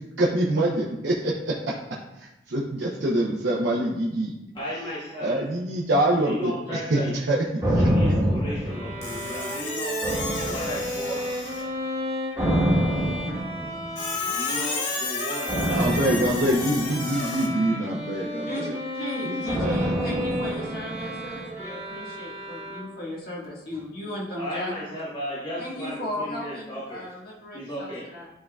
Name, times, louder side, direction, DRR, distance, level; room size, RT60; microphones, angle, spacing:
voice 1, 0.2-1.7 2.2-4.3 5.2-6.5 6.9-7.0 7.3-7.4 15.7-18.7 19.2-19.9, right 1 dB, 80° right, -4 dB, 0.8 m, -25 dB
voice 2, 4.5-5.4 6.2-7.2 7.7-10.0 10.4-11.2 14.2-16.3 24.4-27.1 27.5-28.0, equal, 25° left, -9 dB, 1.2 m, -34 dB
sound 1, 7.6-9.5 10.0-11.3 12.3-14.1 15.5-17.9 19.5-21.6 21.9-22.0, equal, 15° right, 1.2 m, -26 dB
Bowed string instrument, 8.7-23.2, equal, 35° right, 1.0 m, -34 dB
Squeak, 9.0-11.8 14.0-17.5, left 4 dB, 90° left, 1.1 m, -32 dB
voice 3, 18.5-24.8 25.6-28.3, left 1 dB, 55° left, -5 dB, 1.7 m, -36 dB
11.0 x 3.7 x 2.3 m, 0.95 s
head